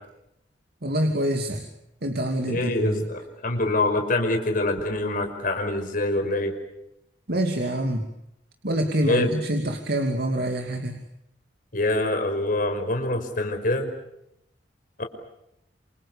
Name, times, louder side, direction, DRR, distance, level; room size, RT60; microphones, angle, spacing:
voice 1, 0.8-1.6 2.0-3.0 7.3-8.0 8.6-11.0, right 1 dB, 60° right, 4 dB, 2.8 m, -26 dB
voice 2, 2.5-6.5 9.0-9.4 11.7-13.9 15.0-15.1, left 2 dB, 50° left, 5 dB, 5.5 m, -25 dB
28.5 x 28.0 x 7.0 m, 0.82 s
head